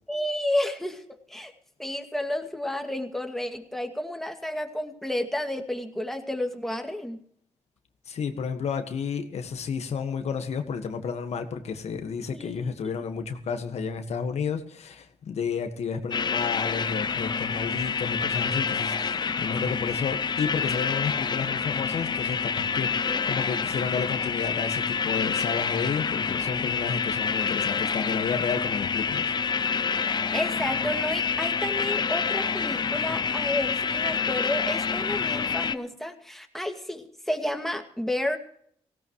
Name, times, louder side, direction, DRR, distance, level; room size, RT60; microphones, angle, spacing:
voice 1, 0.1-1.5 1.8-7.2 12.3-12.7 23.1-23.2 30.1-38.4, left 1 dB, ahead, 4 dB, 2.2 m, -31 dB
voice 2, 8.1-29.3, left 6 dB, 65° left, 6 dB, 1.6 m, -31 dB
sound 1, 16.1-35.8, left 6 dB, 40° left, 0.7 m, -27 dB
18.5 x 17.0 x 3.2 m, 0.64 s
cardioid pair, 80°, 12 cm